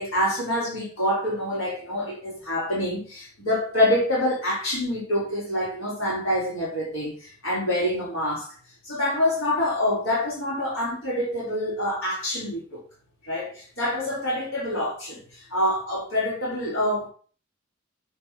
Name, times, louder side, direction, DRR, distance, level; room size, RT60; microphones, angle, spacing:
voice 1, 0.0-8.5 8.8-12.8 13.2-17.1, left 1 dB, 80° left, 4.7 m, -26 dB
8.6 x 4.4 x 6.0 m
head